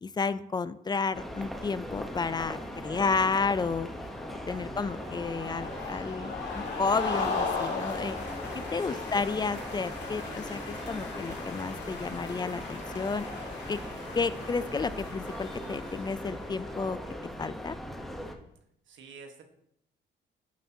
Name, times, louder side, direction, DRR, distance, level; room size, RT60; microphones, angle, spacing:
voice 1, 0.0-3.9 4.5-8.1 8.7-13.3 13.7-13.8 14.2-17.0 17.4-17.8, left 4 dB, 20° left, 15 dB, 0.3 m, -31 dB
sound 1, 1.1-18.3, equal, ahead, 0.9 m, -40 dB
sound 2, 1.5-17.2, left 4 dB, 60° left, 2.3 m, -39 dB
voice 2, 2.9-3.5 4.5-4.9 8.2-9.2 9.5-9.8 14.3-14.5 18.8-19.4, right 5 dB, 75° right, 5 dB, 1.3 m, -51 dB
9.1 x 6.8 x 2.8 m, 0.75 s
cardioid pair, 90°, 20 cm